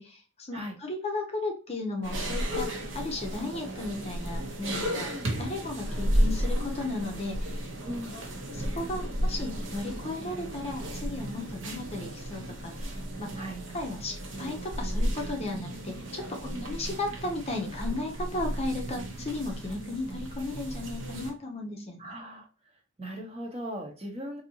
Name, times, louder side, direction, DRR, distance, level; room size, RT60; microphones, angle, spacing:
voice 1, 0.0-7.7 8.1-8.2 8.5-13.3 13.7-22.1, left 2 dB, 30° left, 2 dB, 0.6 m, -35 dB
sound 1, 2.0-21.3, equal, 55° right, 0.9 m, -33 dB
voice 2, 7.8-8.1 13.4-13.6 16.4-16.7 22.0-22.5 23.0-24.4, equal, 30° right, 1 dB, 0.8 m, -38 dB
4.0 x 2.7 x 2.7 m, 0.35 s
head